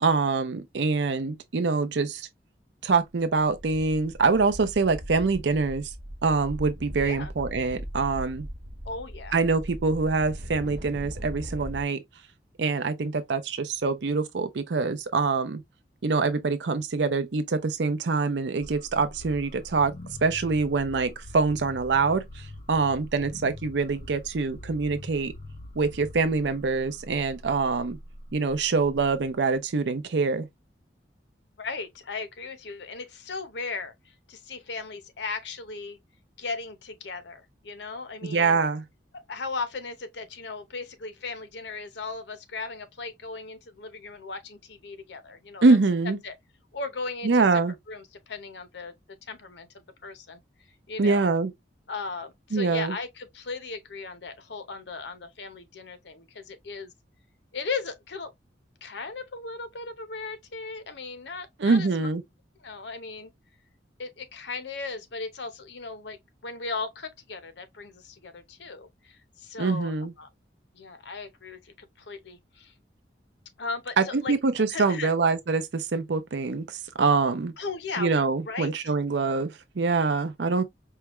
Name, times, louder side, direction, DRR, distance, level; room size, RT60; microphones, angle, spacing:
voice 1, 0.0-2.3 2.8-5.9 6.2-8.5 9.3-12.0 12.6-15.6 16.0-19.9 20.2-25.3 25.8-28.0 28.3-30.5 38.2-38.8 45.6-46.2 47.2-47.7 51.0-51.5 52.5-52.9 61.6-62.2 69.6-70.1 74.0-77.5 78.0-80.6, right 4 dB, 80° right, 0.5 m, -25 dB
sound 1, 3.1-3.2 3.4-11.8, equal, 50° right, 1.1 m, -39 dB
voice 2, 8.8-9.4 31.6-36.0 36.4-38.6 39.1-45.8 46.2-46.4 46.7-47.6 47.9-48.9 49.3-49.7 50.0-50.4 50.9-51.3 51.9-56.9 57.5-58.3 58.8-62.1 62.6-63.3 64.0-70.3 70.7-72.7 73.6-74.3 74.7-75.1 77.6-78.1 78.4-78.7, left 4 dB, 80° left, 0.8 m, -37 dB
sound 2, 18.6-29.5, left 1 dB, 35° left, 0.6 m, -44 dB
4.7 x 2.2 x 3.0 m
head